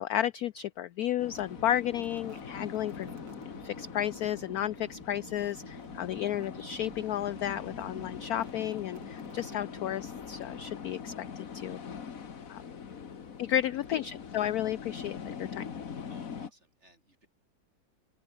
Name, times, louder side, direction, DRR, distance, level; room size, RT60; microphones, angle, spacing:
voice 1, 0.0-3.1 3.6-11.8 12.5-12.6 13.4-15.7, left 11 dB, 70° left, 0.9 m, -32 dB
sound 1, 1.2-16.5, left 6 dB, 45° left, 1.8 m, -43 dB
sound 2, 1.2-10.2, right 5 dB, 65° right, 3.0 m, -52 dB
voice 2, 13.5-13.8 16.1-17.3, right 1 dB, 35° right, 7.8 m, -60 dB
open air
omnidirectional pair, 2.1 m